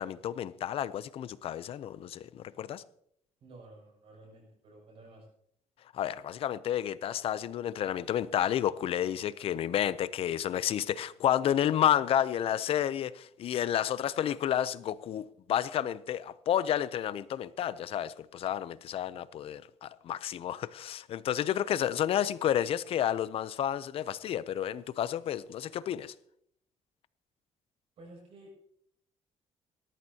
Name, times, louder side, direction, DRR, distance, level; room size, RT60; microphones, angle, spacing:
voice 1, 0.0-2.8 5.9-26.1, left 10 dB, 50° left, 0.5 m, -31 dB
voice 2, 3.4-5.3 28.0-28.6, right 2 dB, 50° right, 6.5 m, -52 dB
18.0 x 13.5 x 2.8 m
cardioid pair, 170°, 12 cm